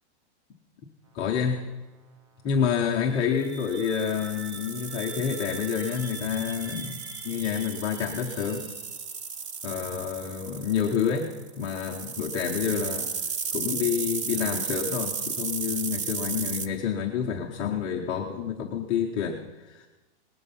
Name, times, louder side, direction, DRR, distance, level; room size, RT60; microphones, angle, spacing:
voice 1, 1.1-1.6 2.4-8.7 9.6-11.3 11.6-13.1 13.5-19.9, left 7 dB, 15° left, -2 dB, 0.6 m, -28 dB
sound 1, 2.8-9.4, right 3 dB, 75° right, 5.4 m, -45 dB
sound 2, 3.5-16.7, right 6 dB, 30° right, 0.5 m, -35 dB
19.0 x 12.0 x 5.7 m, 1.1 s
supercardioid pair, 175°, 34 cm